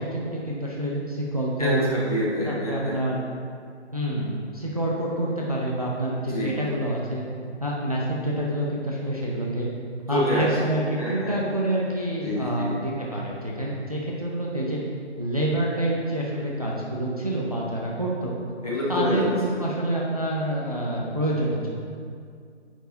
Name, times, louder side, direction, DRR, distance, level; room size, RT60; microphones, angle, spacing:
voice 1, 0.0-1.9 2.5-3.2 3.9-7.2 7.6-9.7 10.1-14.8 15.2-18.3 18.9-21.7, right 1 dB, 35° right, -4 dB, 0.6 m, -27 dB
voice 2, 1.6-2.9 6.2-6.5 10.1-10.7 11.0-11.3 12.2-12.7 18.6-19.3, left 1 dB, 30° left, -8 dB, 1.8 m, -27 dB
9.2 x 4.6 x 3.9 m, 2.2 s
hypercardioid pair, 180°, 35 cm